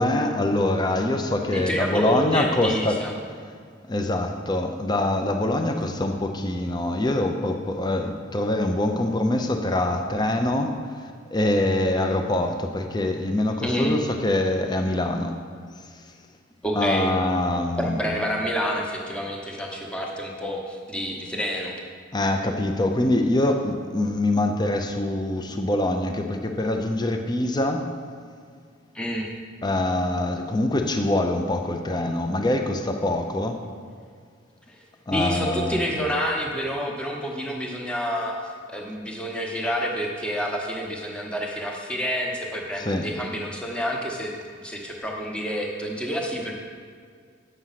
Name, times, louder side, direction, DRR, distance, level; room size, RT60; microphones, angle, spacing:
voice 1, 0.0-3.0 3.9-10.8 11.3-15.4 16.8-18.0 22.1-27.9 29.6-33.6 35.1-35.9 42.8-43.1, left 1 dB, 20° left, 4 dB, 0.6 m, -24 dB
voice 2, 1.5-3.1 13.6-14.0 16.6-17.1 17.8-21.8 28.9-29.3 34.7-34.8 35.1-38.4 38.7-44.3 44.6-46.5, equal, 5° left, 0 dB, 1.0 m, -28 dB
8.0 x 6.3 x 5.8 m, 2.1 s
head